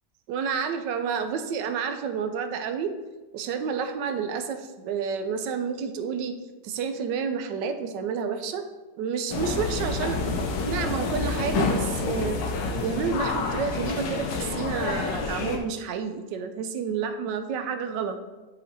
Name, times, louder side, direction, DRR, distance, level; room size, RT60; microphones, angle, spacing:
voice 1, 0.3-2.9 3.3-6.4 6.6-8.6 9.0-12.4 12.8-18.2, right 6 dB, 80° right, 8 dB, 1.2 m, -30 dB
sound 1, 9.3-15.6, left 3 dB, 80° left, 1.4 m, -28 dB
8.3 x 5.0 x 2.7 m, 1.2 s
omnidirectional pair, 1.9 m